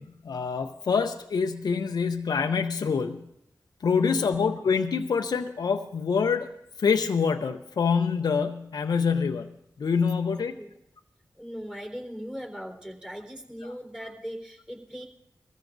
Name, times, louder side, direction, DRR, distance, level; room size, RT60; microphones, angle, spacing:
voice 1, 0.0-3.3 3.8-6.5 6.8-9.5 9.8-10.6, left 5 dB, 85° left, 5 dB, 0.6 m, -26 dB
voice 2, 3.9-4.3 10.3-10.7 11.4-15.1, equal, 10° right, 2 dB, 3.7 m, -39 dB
21.0 x 14.5 x 2.6 m, 0.78 s
cardioid pair, 50°, 7 cm